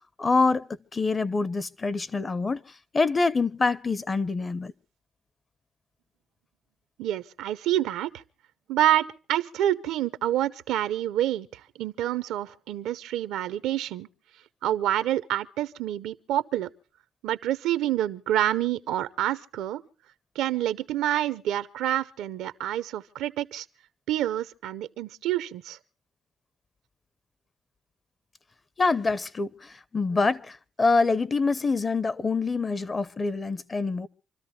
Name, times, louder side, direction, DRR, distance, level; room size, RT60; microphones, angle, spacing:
voice 1, 0.2-2.6 2.9-4.7 28.8-34.1, left 3 dB, 30° left, 0.8 m, -25 dB
voice 2, 7.0-8.2 8.7-14.1 14.6-16.7 17.2-19.8 20.4-23.7 24.1-25.8, right 12 dB, 90° right, 0.7 m, -27 dB
27.0 x 13.5 x 2.8 m
cardioid pair, 90°, 0 cm